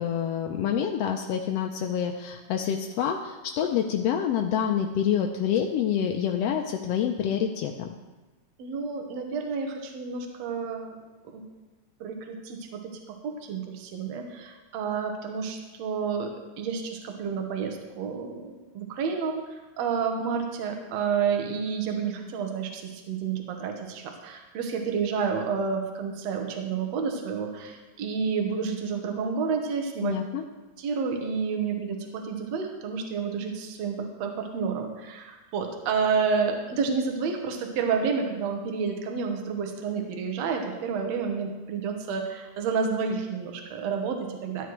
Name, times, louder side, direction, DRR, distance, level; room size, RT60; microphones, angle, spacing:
voice 1, 0.0-7.9 30.0-30.4, left 8 dB, 80° left, 3 dB, 1.4 m, -27 dB
voice 2, 8.6-11.0 11.3-11.4 12.0-12.9 13.2-16.3 16.6-30.2 30.8-44.7, right 5 dB, 65° right, 3 dB, 2.1 m, -30 dB
13.0 x 9.2 x 3.1 m, 1.2 s
omnidirectional pair, 3.4 m